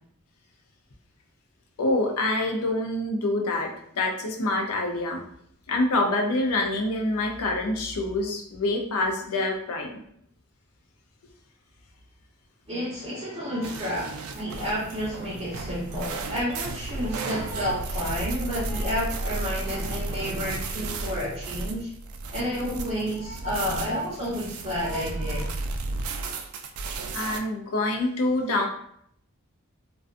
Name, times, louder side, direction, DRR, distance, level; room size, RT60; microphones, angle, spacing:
voice 1, 1.8-3.7 4.0-5.2 5.7-10.0 27.1-28.7, left 2 dB, 80° left, 2 dB, 0.5 m, -26 dB
voice 2, 12.7-21.9 22.3-25.5, equal, 25° right, -11 dB, 0.8 m, -30 dB
sound 1, 13.6-27.4, right 3 dB, 70° right, 0.3 m, -33 dB
2.5 x 2.2 x 2.4 m, 0.68 s
head